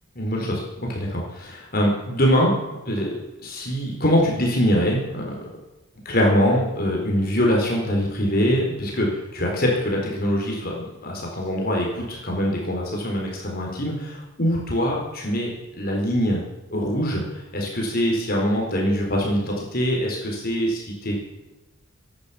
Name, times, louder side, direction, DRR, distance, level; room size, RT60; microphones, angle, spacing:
voice 1, 0.2-2.5 2.9-5.4 6.0-16.4 16.7-21.2, equal, 45° left, -1 dB, 4.2 m, -23 dB
17.5 x 11.5 x 5.9 m, 1.1 s
head